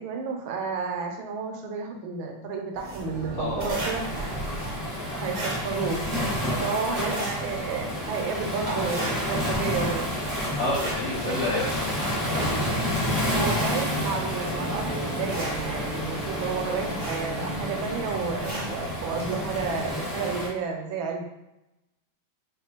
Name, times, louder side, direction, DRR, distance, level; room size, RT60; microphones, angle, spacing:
voice 1, 0.0-4.3 5.2-6.3 6.6-10.0 11.2-11.4 13.2-21.2, right 5 dB, 80° right, 3 dB, 1.4 m, -31 dB
sound 1, 2.8-19.9, right 1 dB, 40° right, 0.6 m, -37 dB
voice 2, 3.3-3.9 6.4-6.7 7.0-7.2 10.6-12.2, left 2 dB, 90° left, -6 dB, 0.6 m, -30 dB
Waves surf, 3.7-20.5, left 1 dB, ahead, 0.8 m, -30 dB
sound 2, 14.4-18.4, right 2 dB, 50° left, 1.1 m, -40 dB
4.7 x 2.3 x 2.9 m, 0.91 s
omnidirectional pair, 2.2 m